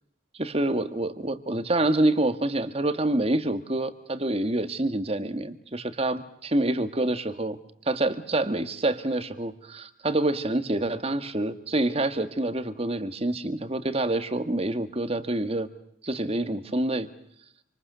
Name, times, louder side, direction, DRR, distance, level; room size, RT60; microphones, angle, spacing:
voice 1, 0.4-7.6 7.9-15.7 16.0-17.1, right 1 dB, 30° right, 11 dB, 1.7 m, -27 dB
28.0 x 26.5 x 6.8 m, 0.74 s
head